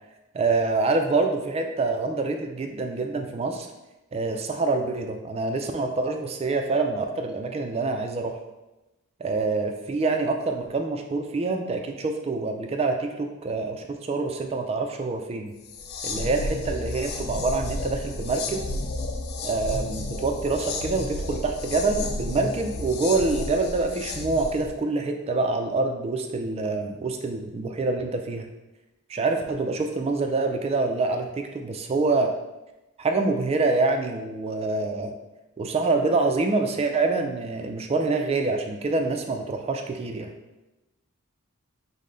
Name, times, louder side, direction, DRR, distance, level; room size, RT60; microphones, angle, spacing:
voice 1, 0.3-3.7 4.1-8.4 9.2-15.5 16.0-18.6 19.4-28.5 29.1-32.3 33.0-35.1 35.6-40.3, right 3 dB, 25° right, 4 dB, 0.3 m, -26 dB
sound 1, 15.6-24.7, left 2 dB, 45° left, 0.4 m, -32 dB
5.3 x 2.1 x 3.7 m, 1.0 s
head